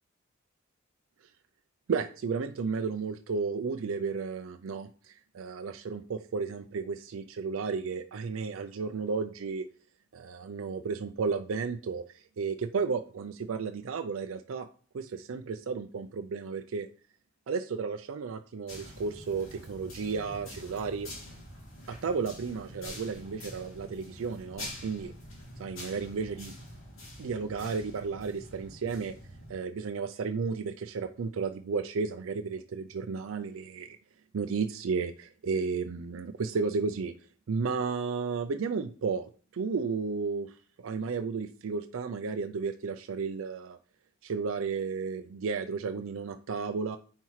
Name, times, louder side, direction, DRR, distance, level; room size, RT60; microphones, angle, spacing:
voice 1, 1.9-9.7 10.1-14.7 14.9-16.9 17.5-21.1 21.9-25.1 25.6-26.5 27.2-29.1 29.5-34.0 34.3-37.1 37.5-40.6 40.8-43.8 44.2-47.0, right 5 dB, 80° right, 7 dB, 0.4 m, -33 dB
sound 1, 18.7-29.5, left 1 dB, 75° left, 2.5 m, -46 dB
9.2 x 4.4 x 3.1 m, 0.42 s
head